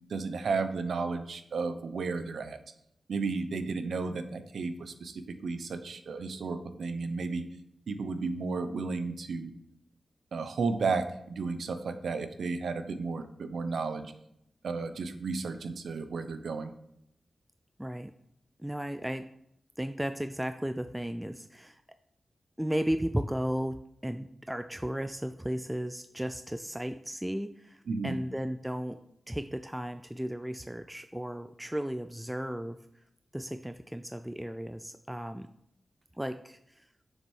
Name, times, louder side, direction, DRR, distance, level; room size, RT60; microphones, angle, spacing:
voice 1, 0.1-2.6 3.1-7.4 7.9-9.6 10.3-14.1 14.6-16.7 27.9-28.2, right 4 dB, 85° right, 9 dB, 0.9 m, -33 dB
voice 2, 17.8-18.1 18.6-19.3 19.8-21.8 22.6-29.0 29.3-32.8 33.3-35.5 36.1-36.8, equal, 5° right, 9 dB, 0.4 m, -35 dB
7.3 x 6.7 x 6.4 m, 0.77 s
wide cardioid pair, 140°, 0 cm